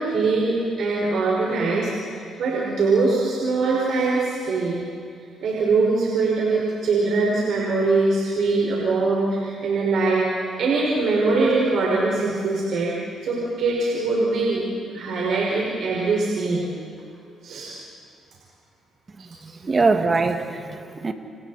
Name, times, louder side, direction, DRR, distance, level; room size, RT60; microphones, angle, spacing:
voice 1, 0.0-4.8 5.4-10.3 10.6-12.9 13.2-16.7 17.4-17.7 19.2-19.3, right 3 dB, 70° right, -4 dB, 5.2 m, -22 dB
voice 2, 19.1-21.1, right 3 dB, 30° right, 6 dB, 1.9 m, -23 dB
29.5 x 27.5 x 4.3 m, 2.3 s
cardioid pair, 90°, 0 cm